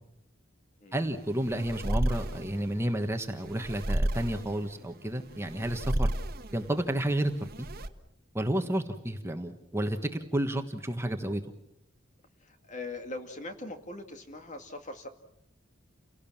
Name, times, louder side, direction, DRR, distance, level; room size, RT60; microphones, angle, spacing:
voice 1, 0.9-6.1 6.5-7.3 7.6-7.7 8.3-11.4, right 1 dB, 15° right, 6 dB, 1.4 m, -31 dB
sound 1, 0.9-7.9, right 1 dB, 50° right, 1.4 m, -33 dB
voice 2, 12.4-15.1, left 2 dB, 35° left, 6 dB, 2.2 m, -41 dB
29.5 x 18.0 x 7.4 m, 0.79 s
head